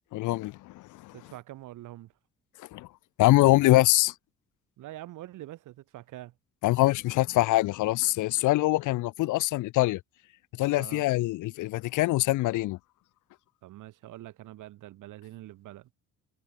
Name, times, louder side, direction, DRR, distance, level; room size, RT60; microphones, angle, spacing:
voice 1, 0.1-1.1 2.7-2.9 3.2-4.1 6.6-10.0 10.6-12.8, left 18 dB, 90° left, 0.8 m, -24 dB
voice 2, 1.1-2.1 4.8-6.3 10.8-11.0 13.6-15.9, right 15 dB, 85° right, 4.6 m, -45 dB
cardioid pair, 90°, 30 cm